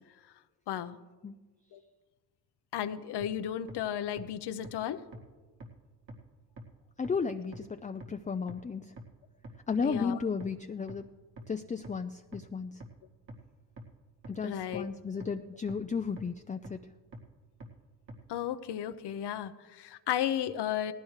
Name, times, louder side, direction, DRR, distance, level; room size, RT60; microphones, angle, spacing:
voice 1, 0.7-1.0 1.7-1.8 2.7-5.0 9.8-10.2 14.4-14.9 18.3-20.9, left 10 dB, 70° left, 11 dB, 0.9 m, -34 dB
sound 1, 3.2-3.3 3.7-3.8 4.2-4.3 4.6-4.7 5.1-5.2 5.6-5.7 6.1-6.2 6.6-6.7 7.0-7.1 7.5-7.6 8.0-8.1 8.5-8.6 9.0-9.1 9.4-9.5 9.9-10.0 10.4-10.5 10.9-11.0 11.4-11.5 11.8-11.9 12.3-12.4 12.8-12.9 13.3-13.4 13.8-13.9 14.2-14.3 14.7-14.8 15.2-15.3 15.7-15.8 16.2-16.3 16.6-16.7 17.1-17.2 17.6-17.7 18.1-18.2, right 1 dB, 70° right, 2.3 m, -44 dB
voice 2, 7.0-8.9 9.7-11.0 11.5-12.8 14.3-16.8, left 5 dB, 20° left, 7 dB, 0.5 m, -34 dB
18.0 x 15.5 x 3.3 m, 1.3 s
cardioid pair, 75°, 42 cm